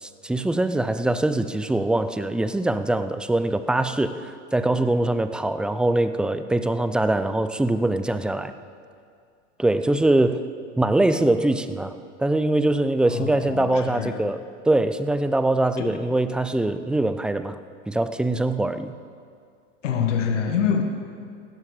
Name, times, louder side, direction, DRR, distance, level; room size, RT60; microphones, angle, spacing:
voice 1, 0.0-8.5 9.6-10.4 10.8-11.9 12.2-17.6 17.9-18.9, right 2 dB, 5° right, 11 dB, 0.4 m, -23 dB
voice 2, 13.1-14.2 15.8-16.0 19.8-20.8, left 7 dB, 80° left, 5 dB, 1.6 m, -25 dB
16.0 x 13.0 x 4.9 m, 2.2 s
hypercardioid pair, 105°, 36 cm